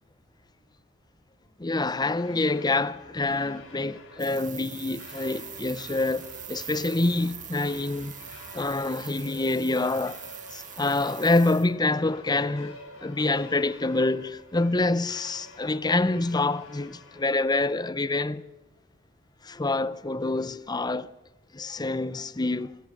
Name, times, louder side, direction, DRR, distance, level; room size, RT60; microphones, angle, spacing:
voice 1, 1.6-8.2 8.5-10.2 10.5-18.4 19.4-21.1 21.5-22.8, left 2 dB, 20° left, 0.7 m, -26 dB
sound 1, 2.1-17.4, left 2 dB, 75° left, 7.6 m, -49 dB
sound 2, 4.2-11.7, right 12 dB, 40° right, 1.4 m, -43 dB
25.0 x 14.5 x 8.6 m
head